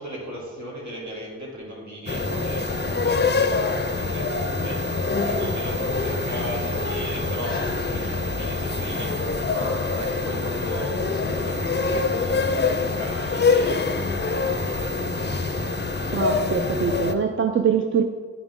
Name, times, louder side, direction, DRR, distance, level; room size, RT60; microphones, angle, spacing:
voice 1, 0.0-15.9, equal, 75° right, -3 dB, 2.0 m, -37 dB
sound 1, 2.1-17.1, left 3 dB, 35° left, 0.5 m, -25 dB
voice 2, 16.1-18.0, right 6 dB, 45° right, 6 dB, 0.4 m, -23 dB
9.4 x 5.1 x 3.6 m, 1.5 s
wide cardioid pair, 115°, 29 cm